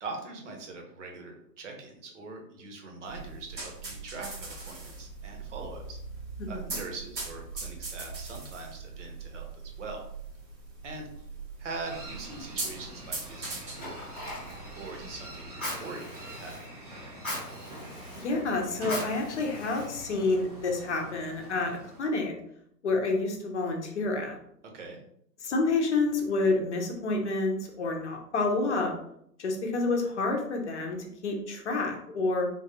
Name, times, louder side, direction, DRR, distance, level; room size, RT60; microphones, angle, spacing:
voice 1, 0.0-6.0 6.5-9.5 9.8-10.0 10.8-11.1 11.6-14.0 14.8-16.5 24.6-25.0, right 3 dB, 45° right, 2 dB, 1.0 m, -42 dB
sound 1, 3.1-15.5, right 3 dB, 90° right, 1.4 m, -41 dB
sound 2, 11.8-22.0, right 1 dB, 25° right, 0.5 m, -45 dB
Fire, 13.2-20.4, left 1 dB, 5° left, 0.9 m, -41 dB
voice 2, 18.1-22.3 22.8-24.4 25.4-28.9 29.4-32.5, left 3 dB, 45° left, 2 dB, 0.8 m, -29 dB
3.8 x 2.4 x 2.8 m, 0.71 s
hypercardioid pair, 140°, 49 cm